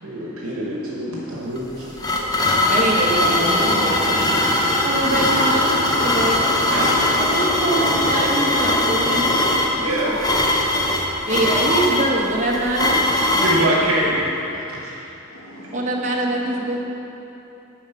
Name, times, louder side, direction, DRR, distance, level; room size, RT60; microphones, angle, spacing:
voice 1, 0.0-1.9 2.2-2.3 4.4-4.9 6.5-7.1 8.1-8.3 9.7-10.8 13.3-14.3 14.5-15.0, right 1 dB, 70° right, -4 dB, 1.1 m, -25 dB
sound 1, 1.6-13.7, left 1 dB, 20° left, 0.7 m, -20 dB
voice 2, 2.7-4.1 4.8-6.4 7.2-9.3 11.3-13.0 15.7-16.8, right 1 dB, 35° right, -1 dB, 0.9 m, -23 dB
sound 2, 3.5-4.4 4.7-5.8 9.8-10.7 11.2-12.3, left 1 dB, 50° left, 1.3 m, -31 dB
voice 3, 12.8-13.5 14.4-14.6 15.3-16.8, equal, 90° left, -1 dB, 1.3 m, -42 dB
9.1 x 5.0 x 5.7 m, 3.0 s
head